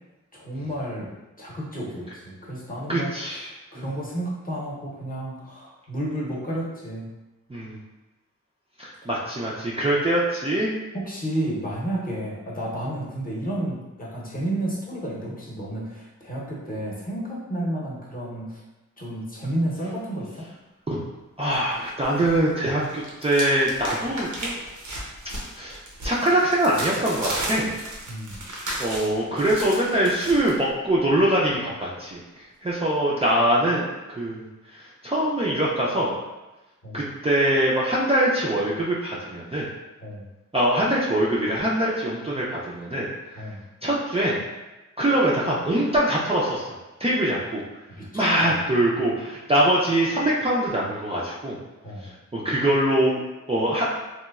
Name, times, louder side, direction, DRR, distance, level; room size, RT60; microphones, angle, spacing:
voice 1, 0.3-1.1 1.4-3.1 3.7-7.1 10.9-18.6 19.0-20.5 28.1-28.4 36.8-37.0 40.0-40.3 43.4-43.6 48.0-48.7 51.8-52.1, right 1 dB, 30° left, -5 dB, 0.8 m, -31 dB
voice 2, 2.9-3.5 3.8-3.9 7.5-7.8 8.8-10.7 20.9-21.0 21.4-24.6 25.6-27.7 28.8-33.8 34.2-34.4 34.7-36.1 36.9-39.6 40.5-43.4 43.8-44.4 45.0-46.7 47.0-47.6 48.1-51.6 52.3-53.2 53.5-53.9, right 1 dB, 20° right, -6 dB, 0.4 m, -23 dB
sound 1, 21.5-22.4 22.7-30.5, right 1 dB, 75° right, 0.6 m, -34 dB
3.0 x 2.2 x 2.3 m, 1.1 s
wide cardioid pair, 75°, 30 cm